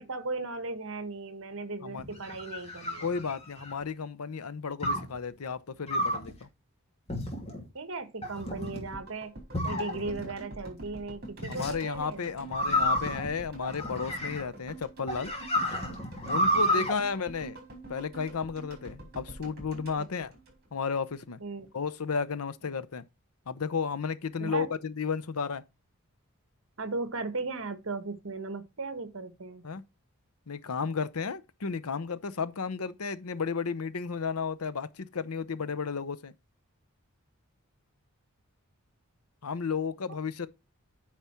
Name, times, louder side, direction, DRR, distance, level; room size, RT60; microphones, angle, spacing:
voice 1, 0.0-3.0 7.7-9.3 9.6-12.5 16.6-16.9 20.0-20.1 21.4-21.7 24.4-24.7 26.8-29.6, right 3 dB, 60° right, 1.3 m, -37 dB
sound 1, 2.0-3.8 4.8-5.2 5.9-6.3 7.1-7.6 8.2-8.8 9.5-10.3 11.4-11.7 12.5-14.6 15.1-16.9, equal, 25° left, 2.4 m, -30 dB
voice 2, 3.0-6.5 11.5-15.3 16.2-17.6 17.9-20.3 20.7-21.4 21.7-23.0 23.5-25.6 29.6-29.8 30.5-36.3 39.4-40.5, left 5 dB, 80° left, 0.7 m, -33 dB
sound 2, 8.9-21.1 21.4-21.5, right 2 dB, 45° right, 4.3 m, -47 dB
9.2 x 4.8 x 4.3 m
head